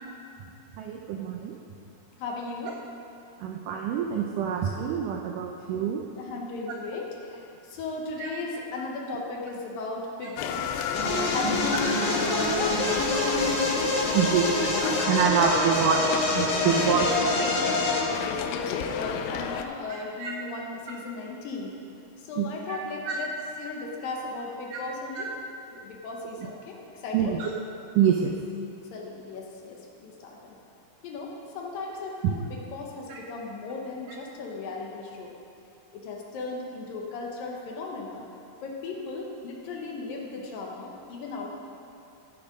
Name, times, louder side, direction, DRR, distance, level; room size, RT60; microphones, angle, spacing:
voice 1, 0.8-1.5 3.4-6.0 6.7-6.8 8.2-8.3 14.1-14.7 15.1-16.0 16.4-17.1 20.2-20.3 22.4-22.8 23.1-23.2 24.7-24.8 25.2-25.3 27.1-27.5 28.0-28.3 33.1-33.2, right 7 dB, 80° right, 1 dB, 1.9 m, -26 dB
voice 2, 2.2-2.8 6.2-13.6 16.6-17.5 18.1-21.8 22.2-23.3 23.6-25.3 25.7-27.4 28.9-30.6 31.0-35.4 35.9-38.3 38.6-41.5, left 3 dB, 70° left, -1 dB, 2.6 m, -36 dB
sound 1, 10.4-19.7, left 8 dB, 85° left, 2.6 m, -32 dB
sound 2, 10.9-18.0, left 1 dB, 35° left, 2.6 m, -26 dB
16.0 x 7.1 x 5.1 m, 2.7 s
omnidirectional pair, 4.5 m